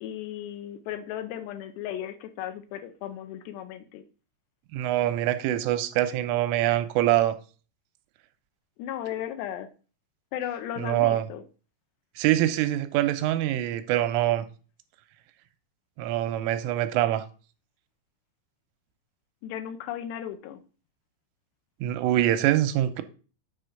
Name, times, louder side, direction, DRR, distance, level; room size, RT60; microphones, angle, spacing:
voice 1, 0.0-4.0 8.8-9.7 10.3-11.4 19.4-20.6, left 11 dB, 75° left, 2.6 m, -35 dB
voice 2, 4.7-7.4 10.8-11.3 12.2-14.5 16.0-17.3 21.8-23.0, right 13 dB, 85° right, 3.2 m, -24 dB
9.7 x 4.5 x 6.5 m
omnidirectional pair, 5.8 m